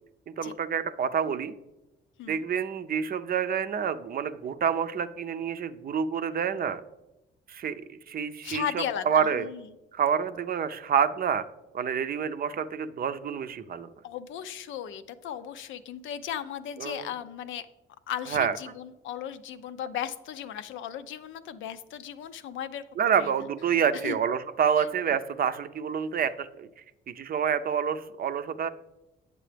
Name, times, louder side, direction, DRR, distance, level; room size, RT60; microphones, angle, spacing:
voice 1, 0.3-1.5 2.3-6.8 7.5-7.8 8.1-9.5 9.9-11.4 11.7-13.9 16.8-17.1 18.3-18.5 23.0-26.7 27.1-28.7, right 7 dB, 50° right, 11 dB, 0.5 m, -28 dB
voice 2, 8.4-9.6 14.0-17.7 18.1-22.8 23.2-23.5 24.0-24.2 24.8-24.9, left 9 dB, 75° left, 12 dB, 0.5 m, -36 dB
8.9 x 6.8 x 3.3 m, 0.96 s
cardioid pair, 90°, 20 cm